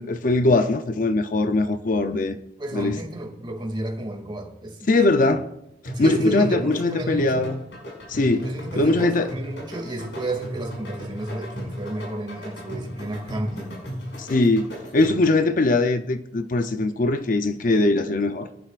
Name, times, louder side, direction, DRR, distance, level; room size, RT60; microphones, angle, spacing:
voice 1, 0.0-2.4 2.7-3.0 4.9-5.5 5.8-7.6 8.1-8.5 8.8-9.3 14.2-18.5, left 2 dB, 50° left, 0.6 m, -21 dB
voice 2, 2.6-5.2 5.9-7.5 8.4-13.8, right 1 dB, 25° right, 2.4 m, -32 dB
sound 1, 5.9-15.4, equal, 80° left, 6.2 m, -35 dB
23.5 x 11.0 x 2.5 m
head